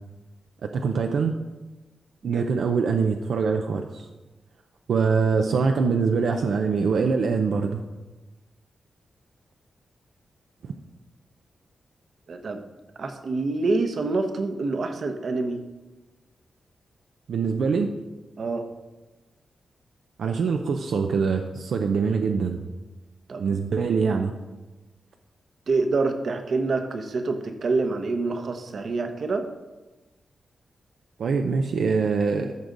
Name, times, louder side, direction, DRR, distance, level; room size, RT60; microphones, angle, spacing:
voice 1, 0.6-1.3 2.2-4.1 4.9-7.8 10.6-10.7 17.3-18.0 20.2-22.6 23.4-24.3 31.2-32.5, right 5 dB, 75° right, 4 dB, 0.6 m, -24 dB
voice 2, 12.3-12.6 13.0-15.6 18.4-18.7 23.3-23.4 25.7-29.5, right 3 dB, 55° right, 6 dB, 0.9 m, -26 dB
13.5 x 6.2 x 3.9 m, 1.2 s
wide cardioid pair, 150°, 0 cm